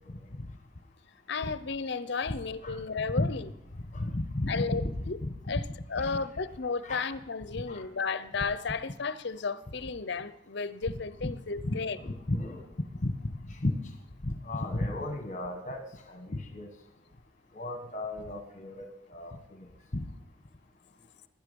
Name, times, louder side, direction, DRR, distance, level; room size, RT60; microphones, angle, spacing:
voice 1, 1.3-3.5 4.5-5.2 5.5-5.6 5.9-12.0, left 4 dB, 55° left, 0.6 m, -33 dB
voice 2, 3.9-4.9 5.2-5.3 6.0-6.2 6.8-7.1 7.7-7.8 11.2-11.3 11.6-12.6 13.0-13.1 13.6-13.7 14.2-15.8 16.1-16.7 17.5-19.4 19.9-20.1, left 1 dB, 35° left, 1.2 m, -33 dB
18.0 x 10.5 x 5.3 m
head